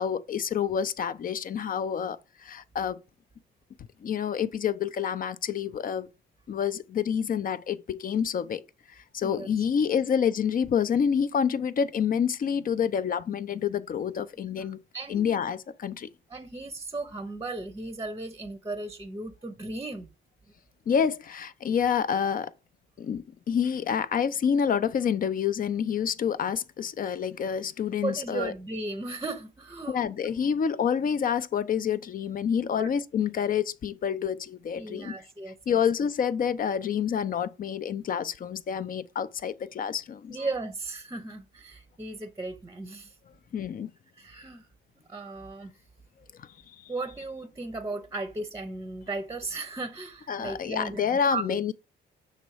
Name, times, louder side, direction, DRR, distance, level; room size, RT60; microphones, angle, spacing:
voice 1, 0.0-3.0 4.0-6.1 6.5-8.6 9.0-14.8 15.1-16.1 20.9-22.5 23.0-28.5 29.9-35.1 35.7-40.5 43.5-43.9 46.4-46.5 46.8-46.9 50.3-51.7, left 7 dB, 45° left, 0.5 m, -28 dB
voice 2, 14.5-15.4 16.3-20.1 28.0-30.0 32.7-32.9 34.8-35.8 40.3-43.2 44.2-44.7 45.1-45.7 46.9-51.0 51.3-51.6, right 2 dB, 15° right, 0.7 m, -36 dB
6.5 x 3.1 x 4.7 m
cardioid pair, 90°, 20 cm